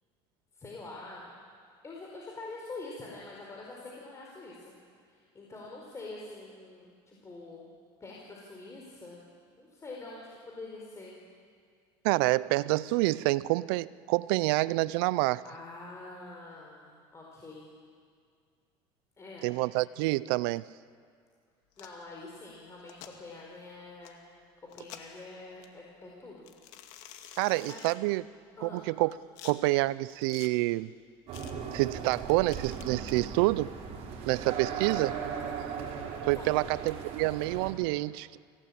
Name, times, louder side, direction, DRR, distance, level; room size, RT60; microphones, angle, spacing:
voice 1, 0.5-1.3 1.8-4.7 5.1-7.7 8.0-9.2 9.6-11.2 15.4-17.7 19.2-19.5 21.8-24.2 24.6-26.5 27.7-27.8 28.6-28.8 36.3-36.6, left 3 dB, 25° left, -2 dB, 4.5 m, -45 dB
voice 2, 12.0-15.4 19.4-20.6 27.4-28.2 28.6-29.2 29.4-30.9 31.7-33.7 34.3-35.2 36.3-38.4, right 20 dB, 80° right, 19 dB, 0.5 m, -27 dB
sound 1, 21.7-22.0 22.8-23.1 24.0-24.1 24.7-25.2 25.6-25.7 26.5-28.0 28.8-29.5 30.1-30.5 31.3-31.5 32.1-33.2, left 11 dB, 70° left, 2.1 m, -49 dB
sound 2, 31.3-37.7, right 6 dB, 60° right, 5.4 m, -38 dB
25.0 x 17.0 x 8.7 m, 2.1 s
supercardioid pair, 110°, 12 cm